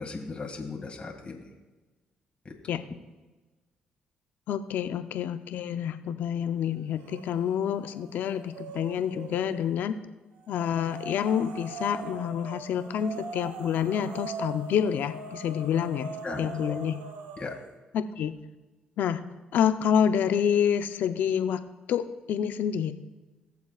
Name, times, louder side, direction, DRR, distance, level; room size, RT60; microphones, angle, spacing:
voice 1, 0.0-1.4 2.4-2.5 16.2-16.7 17.4-17.5, left 4 dB, 35° left, 1 dB, 2.1 m, -37 dB
voice 2, 4.5-10.0 10.5-16.1 16.4-17.0 17.9-18.4 19.0-19.2 19.5-21.6 21.9-22.9, left 8 dB, 75° left, 10 dB, 0.7 m, -28 dB
sound 1, 7.0-7.6 7.9-9.7 10.5-17.7, right 4 dB, 85° right, 0.9 m, -41 dB
20.5 x 7.0 x 2.4 m, 1.2 s
supercardioid pair, 65°, 3 cm